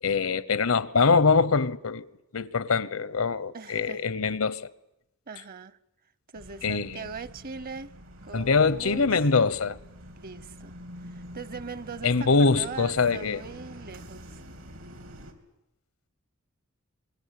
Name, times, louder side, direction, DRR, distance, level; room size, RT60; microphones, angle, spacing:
voice 1, 0.0-2.1 2.3-4.7 6.6-7.1 8.3-9.8 12.0-13.4, left 4 dB, 90° left, 1.0 m, -23 dB
voice 2, 3.5-4.0 5.3-5.8 6.3-7.9 8.2-9.1 10.2-10.8 11.0-14.4, right 5 dB, 45° right, 0.9 m, -40 dB
sound 1, 6.4-15.3, equal, 80° right, 3.3 m, -46 dB
26.5 x 22.0 x 8.4 m
head